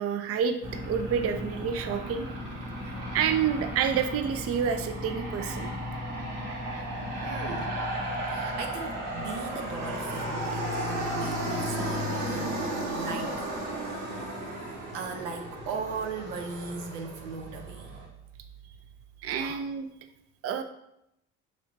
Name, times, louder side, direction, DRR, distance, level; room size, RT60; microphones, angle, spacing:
voice 1, 0.0-2.3 2.8-5.7 6.7-6.8 19.2-19.9 20.4-20.6, right 7 dB, 45° right, 7 dB, 0.5 m, -29 dB
Aircraft, 0.6-18.0, equal, 65° right, 1.3 m, -34 dB
voice 2, 2.7-3.1 7.2-7.8 8.3-12.6 12.9-13.5 14.9-18.0 19.4-19.6, right 4 dB, 85° right, 4 dB, 0.6 m, -38 dB
3.4 x 2.6 x 3.9 m, 0.80 s
hypercardioid pair, 65°, 34 cm